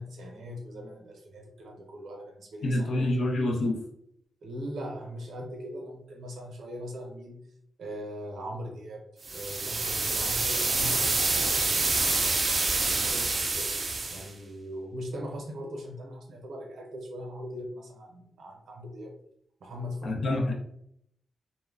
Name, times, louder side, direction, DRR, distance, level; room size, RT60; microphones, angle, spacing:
voice 1, 0.0-3.1 4.4-7.5 7.8-12.3 12.8-13.7 14.1-19.1 19.6-20.5, equal, 80° right, 2 dB, 0.7 m, -40 dB
voice 2, 2.6-3.8 20.0-20.5, left 1 dB, 70° left, 2 dB, 0.5 m, -27 dB
sound 1, 9.2-14.3, right 3 dB, 35° right, 0.4 m, -27 dB
2.2 x 2.1 x 3.5 m, 0.72 s
wide cardioid pair, 175°, 0 cm